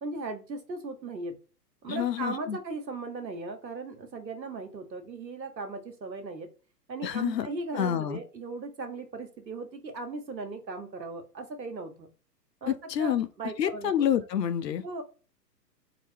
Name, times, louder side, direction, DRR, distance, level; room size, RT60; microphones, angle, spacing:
voice 1, 0.0-1.4 1.8-6.5 6.9-12.1 12.6-14.1 14.8-15.0, right 3 dB, 90° right, 0.9 m, -37 dB
voice 2, 1.9-2.6 7.0-7.5 7.7-8.2 12.7-13.3 13.6-14.8, left 10 dB, 75° left, 0.6 m, -28 dB
3.8 x 2.0 x 3.2 m
figure-of-eight pair, 115°, 50 cm